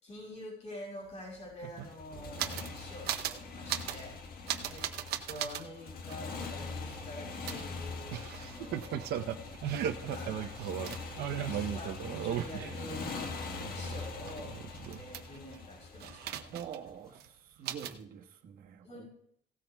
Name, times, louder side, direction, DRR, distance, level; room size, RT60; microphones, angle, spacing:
voice 1, 0.0-4.9 5.2-9.6 10.0-11.0 11.4-14.6 14.9-16.5 17.6-17.7 18.8-19.1, left 1 dB, 40° left, -4 dB, 5.9 m, -47 dB
sound 1, 1.1-1.2 1.4-2.8 3.1-3.4 3.7-4.0 4.5-5.6 6.1-6.2 7.5-13.2 13.5-15.6 16.0-16.9 17.2-17.3 17.7-18.0, right 10 dB, 75° right, 0.8 m, -37 dB
Motorcycle, 1.8-16.9, left 4 dB, 60° left, 1.5 m, -43 dB
voice 2, 16.4-17.3 17.6-19.1, right 8 dB, 60° right, 1 dB, 1.3 m, -45 dB
16.5 x 13.0 x 2.3 m, 0.70 s
cardioid pair, 110°, 17 cm